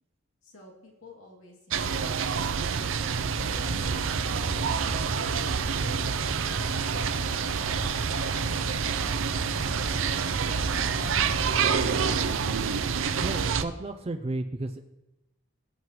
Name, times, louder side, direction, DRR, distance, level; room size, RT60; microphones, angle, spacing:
voice 1, 0.4-4.1 5.0-10.1, left 1 dB, 85° left, -2 dB, 2.6 m, -52 dB
sound 1, 1.7-13.6, right 6 dB, 75° right, 0.6 m, -28 dB
sound 2, 2.6-5.6 6.0-7.7 7.9-11.4, equal, 35° left, 1.8 m, -54 dB
sound 3, 3.4-12.4, right 1 dB, 60° right, 3.3 m, -37 dB
voice 2, 13.2-14.8, right 2 dB, 30° right, 5 dB, 0.5 m, -33 dB
19.0 x 7.6 x 3.1 m, 0.99 s
head